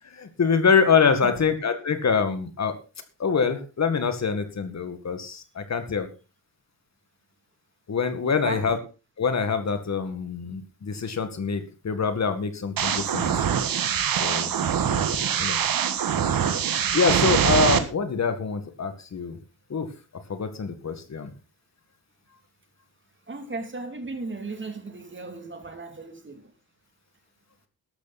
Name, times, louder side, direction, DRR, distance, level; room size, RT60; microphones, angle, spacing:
voice 1, 0.1-2.7 3.2-6.1 7.9-8.8 9.2-13.4 14.2-14.5 15.4-15.6 16.9-19.4 19.7-19.9 20.3-21.3, left 5 dB, 45° left, 9 dB, 2.0 m, -25 dB
voice 2, 8.2-8.6 23.3-26.5, right 3 dB, 30° right, 6 dB, 3.0 m, -36 dB
sound 1, 12.8-17.8, right 8 dB, 70° right, 1.6 m, -23 dB
13.5 x 12.0 x 4.2 m, 0.32 s
cardioid pair, 105°, 36 cm